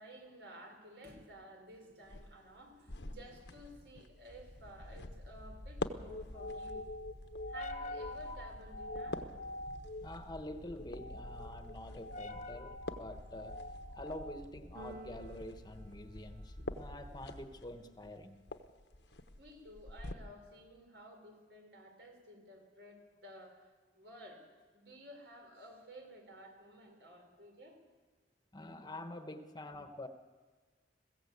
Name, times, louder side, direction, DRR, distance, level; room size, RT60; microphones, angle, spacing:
voice 1, 0.0-6.9 7.5-9.2 9.6-9.7 16.6-16.7 19.4-24.4 24.7-27.8, equal, 80° right, 4.9 m, -54 dB
sound 1, 2.0-20.1, left 2 dB, 80° left, 1.1 m, -48 dB
sound 2, 4.3-17.6, left 1 dB, 45° left, 1.0 m, -46 dB
voice 2, 10.0-13.6 13.9-18.5 28.5-30.1, left 1 dB, 25° left, 1.1 m, -47 dB
Keyboard (musical), 14.7-16.9, right 1 dB, 60° right, 0.6 m, -53 dB
21.0 x 15.5 x 8.4 m
head